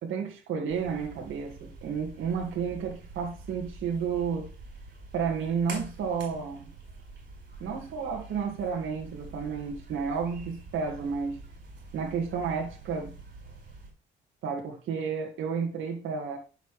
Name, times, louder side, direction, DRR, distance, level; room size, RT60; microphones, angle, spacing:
voice 1, 0.0-4.5 5.1-6.7 7.6-11.4 11.9-13.1 14.4-16.4, right 6 dB, 80° right, 1.9 m, -31 dB
sound 1, 0.7-13.9, right 3 dB, 60° right, 4.3 m, -46 dB
10.5 x 6.9 x 3.2 m
cardioid pair, 90°, 20 cm